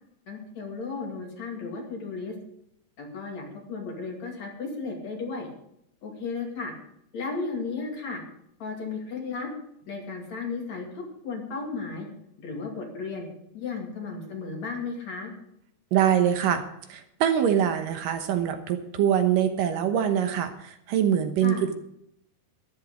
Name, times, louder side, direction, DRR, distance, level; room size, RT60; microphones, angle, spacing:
voice 1, 0.3-2.4 3.0-5.5 6.0-6.7 7.1-8.2 8.6-9.5 9.9-12.1 12.4-13.3 13.5-15.3 21.4-21.7, left 4 dB, 50° left, 1 dB, 3.5 m, -34 dB
voice 2, 15.9-21.7, right 9 dB, 70° right, 8 dB, 2.6 m, -24 dB
13.0 x 11.0 x 5.2 m, 0.75 s
omnidirectional pair, 4.1 m